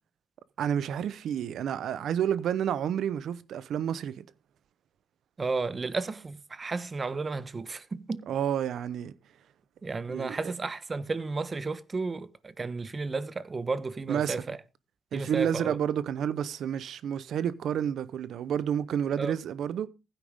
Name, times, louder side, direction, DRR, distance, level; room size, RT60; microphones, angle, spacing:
voice 1, 0.6-4.2 8.3-9.1 10.1-10.3 14.1-14.4 15.1-19.9, right 9 dB, 70° right, 0.9 m, -30 dB
voice 2, 5.4-8.3 9.8-14.6 15.1-15.8 19.2-19.4, right 3 dB, 30° right, 1.1 m, -33 dB
15.5 x 9.2 x 3.7 m
cardioid pair, 90°, 0 cm